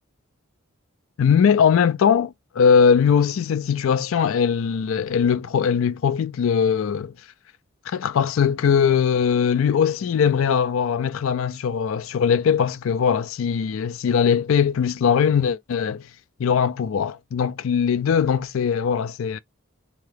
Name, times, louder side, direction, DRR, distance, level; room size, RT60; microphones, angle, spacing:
voice 1, 1.2-7.1 7.9-16.1 16.4-19.4, left 7 dB, 70° left, 0.3 m, -20 dB
2.9 x 2.2 x 3.1 m
head